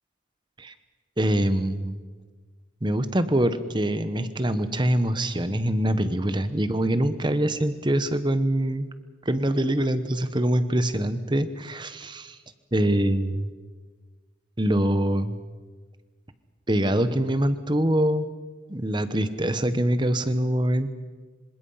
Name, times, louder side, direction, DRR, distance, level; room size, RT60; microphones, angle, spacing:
voice 1, 1.2-2.0 2.8-8.9 9.2-12.4 12.7-13.5 14.6-15.4 16.7-18.3 18.7-20.9, right 1 dB, 25° right, 11 dB, 1.1 m, -24 dB
26.5 x 26.0 x 5.8 m, 1.4 s
head